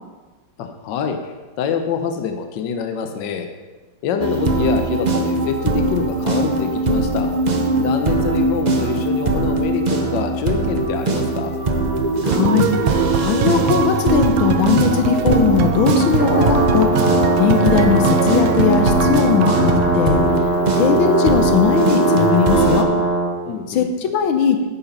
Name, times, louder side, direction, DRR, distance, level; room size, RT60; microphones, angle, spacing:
voice 1, 0.6-3.5 4.0-7.3 7.8-11.5 23.4-23.9, left 6 dB, 70° left, 6 dB, 1.5 m, -25 dB
sound 1, 4.2-22.8, right 2 dB, 55° right, 0.4 m, -21 dB
voice 2, 12.2-16.9 17.4-20.2 20.8-22.9 23.7-24.6, left 7 dB, 90° left, 7 dB, 1.7 m, -19 dB
sound 2, 12.3-20.0, right 7 dB, 80° right, 1.5 m, -23 dB
Brass instrument, 16.1-23.3, right 2 dB, 45° left, 2.8 m, -20 dB
10.0 x 8.4 x 5.4 m, 1.2 s
omnidirectional pair, 2.1 m